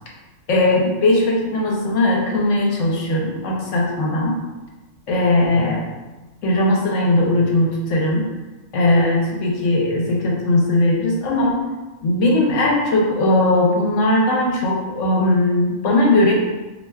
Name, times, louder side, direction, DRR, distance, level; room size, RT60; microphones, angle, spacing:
voice 1, 0.5-4.4 5.1-5.8 6.4-8.3 8.7-11.6 12.0-16.3, left 1 dB, 75° left, -2 dB, 1.1 m, -18 dB
4.4 x 2.7 x 2.2 m, 1.1 s
omnidirectional pair, 1.3 m